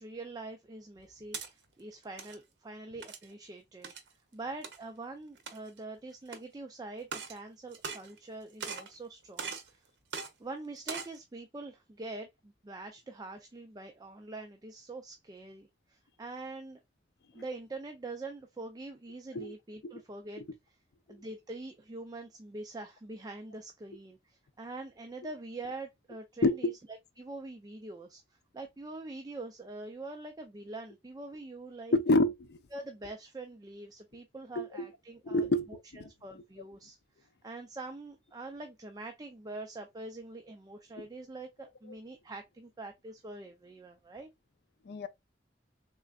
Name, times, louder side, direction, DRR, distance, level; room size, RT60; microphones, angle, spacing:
voice 1, 0.0-3.9 4.3-9.8 10.4-16.8 17.3-20.4 21.1-32.0 32.7-35.8 36.0-44.3, right 2 dB, 20° right, 0.4 m, -44 dB
sound 1, 1.0-1.5 2.0-2.4 3.0-3.3 3.8-4.1 4.6-4.8 5.4-5.8 6.3-6.4 7.0-7.4 7.7-8.3 8.6-8.9 9.4-9.7 10.1-10.3 10.8-11.2, right 5 dB, 85° right, 0.7 m, -40 dB
voice 2, 31.9-32.6 34.6-34.9 35.2-36.1 44.9-45.1, left 2 dB, 65° left, 0.4 m, -28 dB
3.7 x 3.2 x 2.3 m
head